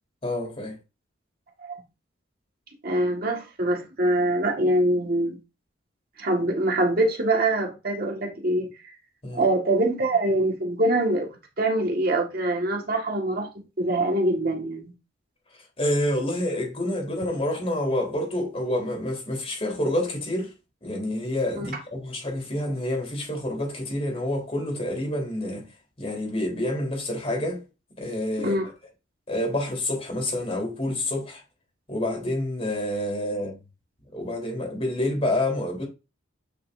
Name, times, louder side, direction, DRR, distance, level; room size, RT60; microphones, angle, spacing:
voice 1, 0.2-0.8 9.2-9.4 15.8-20.5 20.8-25.7 26.0-27.6 28.0-28.6 29.3-31.4 31.9-33.6 34.1-35.9, left 1 dB, 30° left, 3.7 m, -28 dB
voice 2, 2.8-5.4 6.2-8.9 9.3-11.3 11.6-14.9 21.6-21.7 28.4-28.7, right 1 dB, 50° right, 1.8 m, -24 dB
8.8 x 5.4 x 2.6 m
head